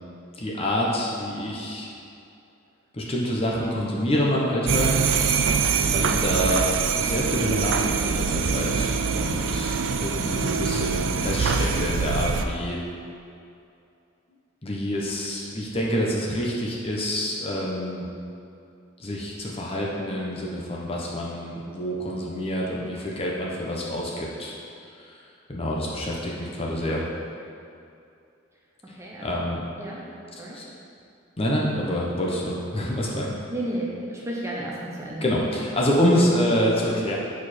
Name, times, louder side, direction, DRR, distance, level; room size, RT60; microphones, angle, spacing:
voice 1, 0.4-1.9 2.9-5.0 5.9-6.7 7.0-12.8 14.6-18.1 19.0-24.6 25.0-25.1 25.5-27.0 29.2-29.6 30.5-30.6 31.4-33.3 35.2-37.2, equal, 30° left, -3 dB, 0.9 m, -27 dB
sound 1, 4.7-12.4, right 5 dB, 75° right, 0.4 m, -24 dB
voice 2, 28.9-29.3 29.8-30.0 30.4-30.6 33.5-35.3, right 1 dB, 15° right, -4 dB, 0.7 m, -32 dB
6.9 x 4.8 x 4.3 m, 2.6 s
head